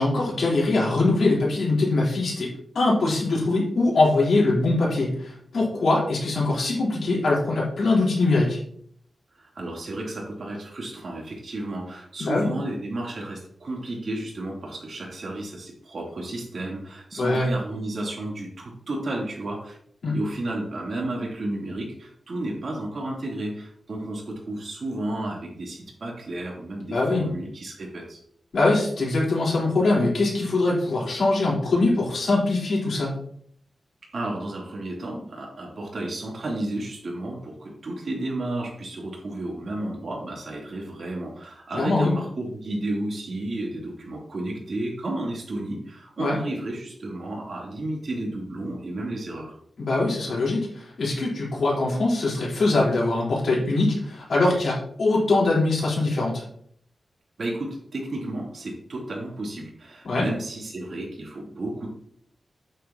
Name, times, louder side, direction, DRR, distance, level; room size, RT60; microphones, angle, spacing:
voice 1, 0.0-8.6 12.2-12.5 17.2-17.5 20.0-20.1 26.9-27.2 28.5-33.1 41.7-42.1 46.2-46.4 49.8-56.4 60.0-60.3, left 2 dB, 75° left, -5 dB, 4.1 m, -22 dB
voice 2, 9.4-19.8 20.1-28.2 34.1-49.6 57.4-61.9, right 1 dB, 60° right, -3 dB, 3.3 m, -32 dB
9.1 x 9.0 x 3.0 m, 0.65 s
wide cardioid pair, 140°, 0 cm